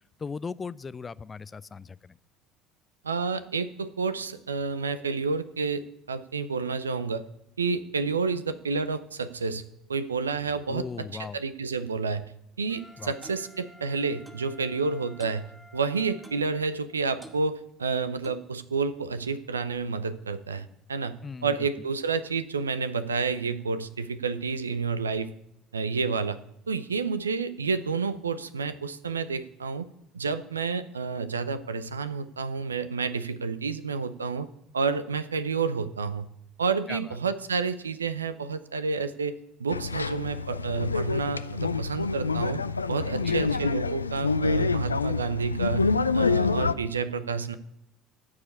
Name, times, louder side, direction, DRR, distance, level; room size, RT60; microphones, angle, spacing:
voice 1, 0.2-2.2 10.7-11.4 13.0-13.1 21.2-21.5 36.9-37.2 43.1-43.7, left 5 dB, 25° left, 18 dB, 0.4 m, -38 dB
voice 2, 3.0-7.2 7.6-9.6 9.9-12.2 12.6-15.4 15.7-21.2 21.4-25.3 25.7-26.4 26.7-29.9 30.1-34.5 34.7-36.3 36.6-42.6 42.9-45.9 46.1-47.5, right 4 dB, 85° right, 13 dB, 0.5 m, -30 dB
Wind instrument woodwind instrument, 12.7-17.5, equal, 5° left, 1.5 m, -54 dB
Clock, 13.2-13.4 14.3-14.5 15.2-15.4 16.2-16.5 17.2-17.4 18.2-18.5, right 2 dB, 15° right, 1.9 m, -48 dB
sound 1, 39.7-46.7, left 4 dB, 90° left, 0.4 m, -27 dB
14.5 x 4.9 x 8.5 m, 0.81 s
figure-of-eight pair, 65°, 0 cm